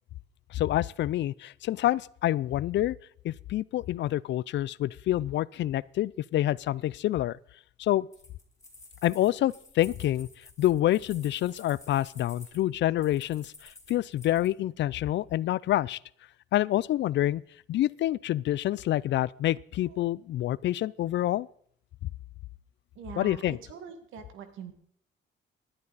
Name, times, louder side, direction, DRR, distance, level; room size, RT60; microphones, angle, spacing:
voice 1, 0.5-3.0 3.2-7.4 7.8-8.1 9.0-10.3 10.6-16.0 16.5-17.4 17.7-21.5 23.2-23.6, left 14 dB, 65° left, 0.4 m, -27 dB
sound 1, 8.1-14.5, left 2 dB, 15° left, 2.8 m, -52 dB
voice 2, 23.0-24.7, right 7 dB, 85° right, 1.9 m, -44 dB
18.5 x 11.0 x 4.1 m
cardioid pair, 90°, 20 cm